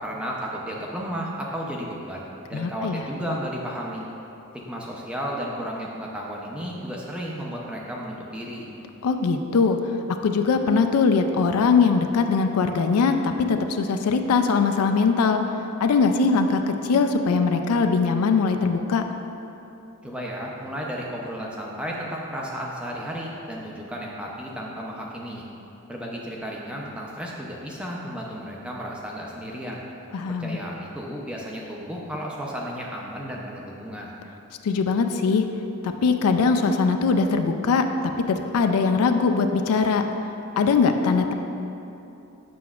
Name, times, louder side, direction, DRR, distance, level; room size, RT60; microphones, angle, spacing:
voice 1, 0.0-4.1 4.5-8.7 20.0-25.5 25.9-29.8 30.2-34.1, equal, 5° right, -3 dB, 0.5 m, -33 dB
voice 2, 2.5-3.0 9.0-9.8 10.2-15.4 15.8-19.0 30.1-30.6 34.6-35.4 35.8-37.8 38.3-40.0 40.6-41.3, left 4 dB, 85° left, 6 dB, 0.4 m, -21 dB
7.6 x 6.0 x 2.4 m, 2.9 s
head